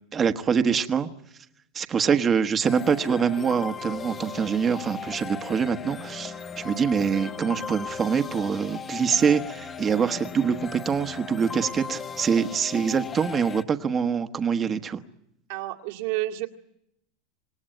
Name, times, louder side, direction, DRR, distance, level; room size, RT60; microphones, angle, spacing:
voice 1, 0.1-1.1 1.7-15.0, right 6 dB, 20° right, 8 dB, 1.2 m, -24 dB
sound 1, 2.6-13.6, left 6 dB, 20° left, 1.0 m, -37 dB
voice 2, 15.5-16.5, right 16 dB, 65° right, 1 dB, 2.2 m, -30 dB
26.5 x 19.0 x 9.0 m, 0.79 s
supercardioid pair, 150°, 0 cm